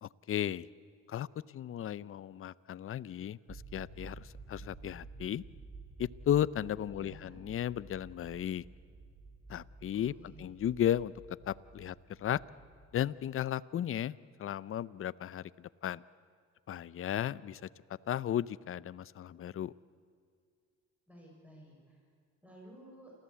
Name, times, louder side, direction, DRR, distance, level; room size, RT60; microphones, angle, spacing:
voice 1, 0.0-0.7 1.1-1.3 1.5-5.4 6.0-8.6 9.5-11.1 11.4-12.4 12.9-16.0 16.7-17.7 18.1-19.7, left 10 dB, 45° left, 20 dB, 0.6 m, -35 dB
sound 1, 3.5-13.3, right 3 dB, 30° right, 3.7 m, -52 dB
voice 2, 6.9-7.4 9.9-10.6 21.1-22.0 22.4-23.1, equal, 5° right, -2 dB, 6.7 m, -54 dB
28.5 x 14.5 x 8.4 m, 2.2 s
cardioid pair, 90°, 30 cm